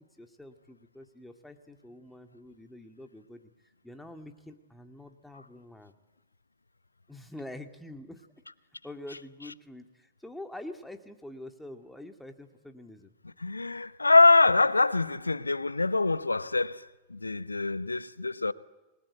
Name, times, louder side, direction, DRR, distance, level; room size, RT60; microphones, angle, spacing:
voice 1, 0.2-3.4 3.8-5.9 7.1-8.2 8.8-13.1, left 1 dB, 5° left, 2.4 m, -46 dB
voice 2, 13.4-16.8 17.1-18.5, left 3 dB, 80° left, 0.9 m, -24 dB
29.0 x 21.5 x 8.2 m
figure-of-eight pair, 90°, 0 cm